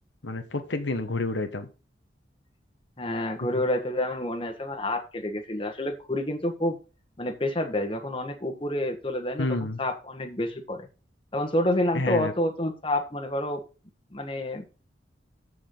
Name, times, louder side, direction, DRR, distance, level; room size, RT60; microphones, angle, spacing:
voice 1, 0.2-1.7 3.4-3.5 9.4-9.8 11.9-12.3, left 2 dB, 85° left, 1.3 m, -29 dB
voice 2, 3.0-6.8 7.2-10.9 11.3-13.6 14.1-14.7, left 1 dB, 30° left, 1.5 m, -28 dB
14.0 x 5.0 x 3.8 m
head